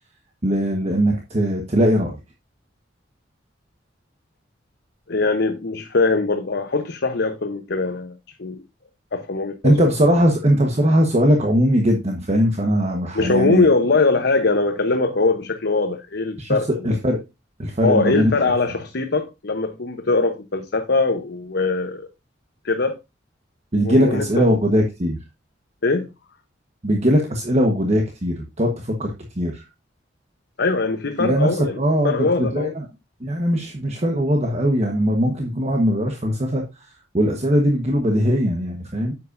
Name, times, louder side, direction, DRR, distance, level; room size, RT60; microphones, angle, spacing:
voice 1, 0.4-2.2 9.6-13.7 16.4-16.6 16.8-17.2 17.6-18.3 23.7-25.2 26.8-29.6 31.2-32.8 33.2-36.6 37.1-39.1, equal, 35° right, 1.2 m, -20 dB
voice 2, 5.1-8.6 9.1-9.9 13.1-17.0 17.8-22.1 22.6-23.0 23.8-24.5 25.8-26.1 30.6-31.8 32.0-32.7, left 3 dB, 60° left, 0.9 m, -21 dB
9.9 x 7.8 x 2.6 m
head